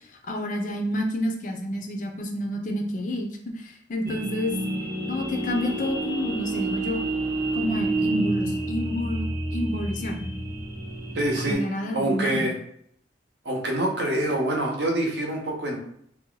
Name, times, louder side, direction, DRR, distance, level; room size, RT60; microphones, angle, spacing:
voice 1, 0.0-4.6 5.1-7.0 7.5-10.2 11.4-12.4, left 1 dB, 45° left, 2 dB, 0.5 m, -29 dB
sound 1, 4.0-11.5, right 2 dB, 15° right, 0.5 m, -29 dB
voice 2, 11.2-11.6 11.9-12.5 13.4-15.8, right 1 dB, 65° right, 0 dB, 0.7 m, -25 dB
2.7 x 2.2 x 3.7 m, 0.68 s
head